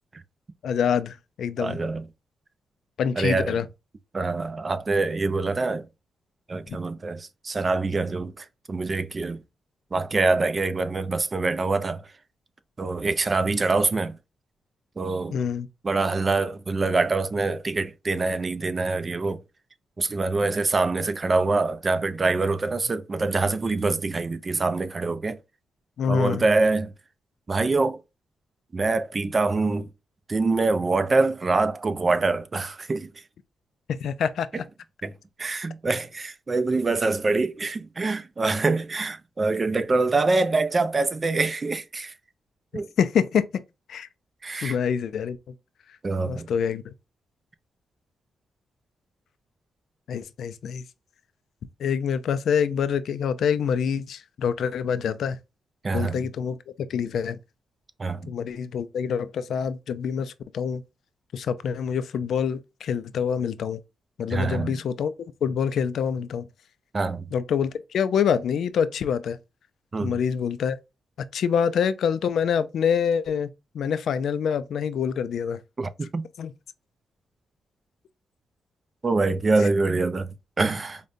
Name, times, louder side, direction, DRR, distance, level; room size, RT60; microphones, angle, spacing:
voice 1, 0.6-1.8 3.0-3.7 6.7-6.8 15.3-15.7 26.0-26.4 34.0-34.6 43.0-43.4 43.9-44.1 44.6-45.4 46.3-46.9 50.1-50.8 51.8-55.4 55.9-56.6 56.9-57.4 58.3-60.8 61.3-63.8 64.2-65.1 65.4-66.5 67.3-69.4 70.0-70.8 71.3-73.5 73.7-75.6 76.4-76.5 79.6-79.7, left 7 dB, 75° left, 0.3 m, -26 dB
voice 2, 1.6-2.0 3.2-3.6 4.1-5.8 6.5-9.4 9.9-12.0 12.8-14.1 15.0-15.4 15.8-19.4 20.0-25.4 26.1-26.9 27.5-28.0 28.7-29.9 30.3-33.1 35.0-35.1 35.4-42.1 42.7-42.9 44.4-44.8 46.0-46.5 55.8-56.2 58.0-58.3 64.3-64.8 66.9-67.3 69.9-70.1 75.8-76.2 79.0-81.0, right 3 dB, 35° right, 0.4 m, -25 dB
5.0 x 2.2 x 2.6 m
cardioid pair, 100°, 0 cm